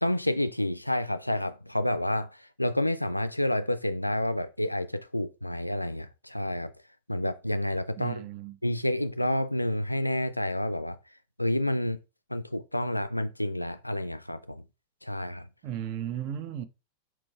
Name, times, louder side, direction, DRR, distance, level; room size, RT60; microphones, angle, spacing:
voice 1, 0.0-6.7 7.1-8.2 8.6-11.0 11.4-12.0 12.3-14.6 15.0-15.5, left 1 dB, 85° left, 0.3 m, -29 dB
voice 2, 8.0-8.6 15.6-16.7, right 10 dB, 45° right, 0.5 m, -35 dB
4.4 x 3.8 x 2.3 m
figure-of-eight pair, 90°, 0 cm